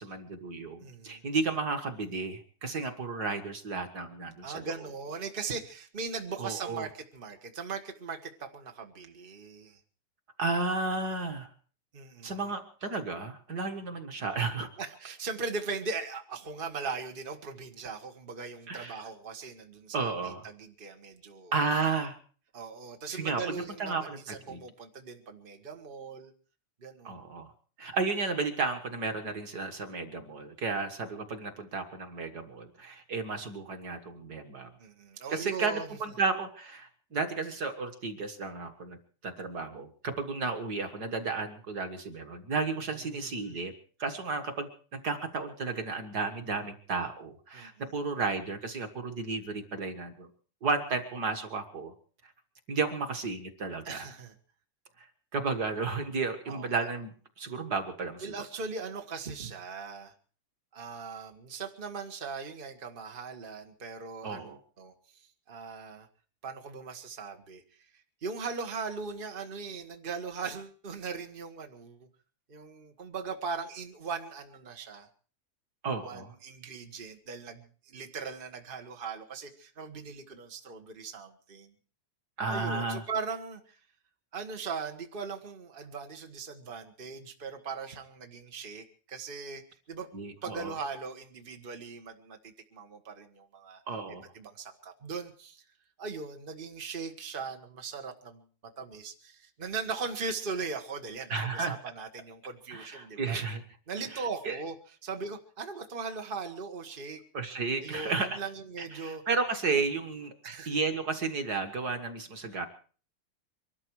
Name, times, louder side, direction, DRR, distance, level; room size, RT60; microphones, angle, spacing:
voice 1, 0.0-4.7 6.4-6.9 10.4-11.5 12.2-14.7 18.7-19.0 19.9-20.5 21.5-22.2 23.1-24.2 24.5-24.6 27.0-27.5 27.8-34.7 35.3-39.0 39.2-43.7 44.0-50.3 50.6-51.9 52.7-54.1 55.3-58.3 64.2-64.6 75.8-76.3 82.4-83.0 90.1-90.7 93.9-94.2 101.3-101.8 102.7-103.6 104.1-104.6 107.3-108.4 108.8-110.3 110.7-112.7, right 4 dB, 45° right, 7 dB, 1.4 m, -33 dB
voice 2, 0.8-1.2 4.4-9.8 11.9-12.4 14.8-21.5 22.5-26.3 26.8-27.2 34.8-35.9 43.1-43.5 47.5-47.7 53.8-54.3 56.5-56.7 58.2-60.1 60.7-64.9 65.5-66.1 66.4-67.6 68.2-72.1 72.5-75.1 76.0-81.7 82.5-83.8 84.3-89.6 89.9-90.1 90.4-93.8 94.3-95.6 96.0-98.4 98.8-103.4 103.9-104.7 105.0-107.2 107.8-109.2 110.4-110.7, right 4 dB, 75° right, 4 dB, 0.4 m, -39 dB
23.5 x 12.5 x 4.7 m, 0.42 s
omnidirectional pair, 3.5 m